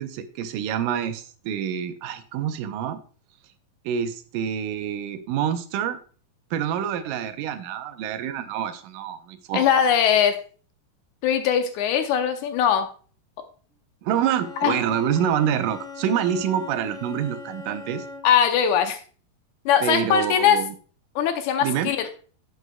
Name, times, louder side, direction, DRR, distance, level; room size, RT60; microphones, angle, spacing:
voice 1, 0.0-3.0 3.9-6.0 6.5-9.7 14.0-18.1 19.8-20.7 21.6-21.9, right 9 dB, 80° right, 9 dB, 2.3 m, -27 dB
voice 2, 9.5-10.4 11.2-12.9 14.6-14.8 18.2-19.0 19.7-20.6 21.2-22.1, left 8 dB, 75° left, 7 dB, 1.9 m, -20 dB
Bowed string instrument, 14.1-18.5, left 5 dB, ahead, 2.0 m, -40 dB
11.0 x 8.1 x 2.3 m, 0.41 s
omnidirectional pair, 3.9 m